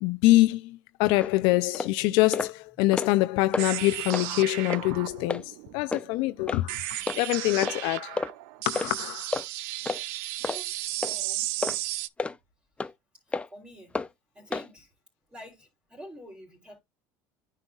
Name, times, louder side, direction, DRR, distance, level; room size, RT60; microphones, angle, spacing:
voice 1, 0.0-8.2 8.7-9.4, left 18 dB, 70° left, 0.5 m, -25 dB
sound 1, 1.2-1.3 1.7-1.9 2.3-2.5 2.8-3.2 3.5-3.7 4.1-4.3 4.7-4.8 5.3-5.4 5.9-6.1 6.5-6.6 7.1-7.2 7.6-7.8 8.2-8.3 8.8-8.9 9.3-9.4 9.9-10.0 10.4-10.6 11.0-11.2 11.6-11.8 12.2-12.4 12.8-12.9 13.3-13.5 13.9-14.1 14.5-14.7, left 3 dB, 15° left, 0.6 m, -30 dB
sound 2, 3.6-12.1, right 17 dB, 80° right, 0.5 m, -34 dB
voice 2, 10.4-10.7 11.0-11.5 13.5-13.9 14.3-14.9 15.3-16.8, equal, 15° right, 3.4 m, -47 dB
9.7 x 5.5 x 2.4 m
supercardioid pair, 115°, 9 cm